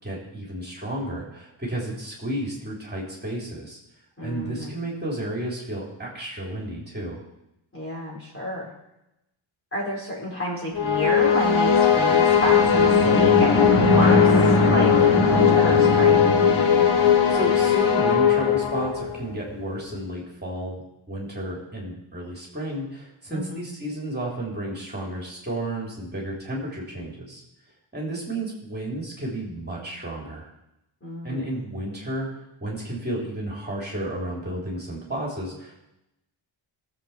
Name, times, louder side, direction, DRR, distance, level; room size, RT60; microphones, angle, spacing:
voice 1, 0.0-3.8 4.2-7.2 16.9-20.8 21.1-27.4 27.9-30.5 31.2-32.3 32.6-35.8, right 1 dB, 20° right, -3 dB, 3.4 m, -32 dB
voice 2, 4.2-4.7 7.7-8.7 9.7-16.4 23.3-23.6 31.0-31.5, equal, 25° left, -3 dB, 4.1 m, -30 dB
sound 1, 10.7-19.2, left 6 dB, 80° left, 2.1 m, -18 dB
18.5 x 7.8 x 4.4 m, 0.90 s
cardioid pair, 105°, 48 cm